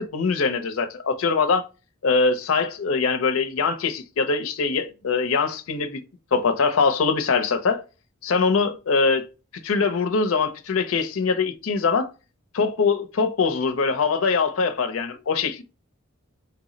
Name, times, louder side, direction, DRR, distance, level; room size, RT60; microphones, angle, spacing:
voice 1, 0.0-1.7 2.0-6.0 6.3-7.8 8.2-9.3 9.6-12.1 12.5-15.6, left 4 dB, 85° left, 0.5 m, -22 dB
4.3 x 2.0 x 3.7 m
head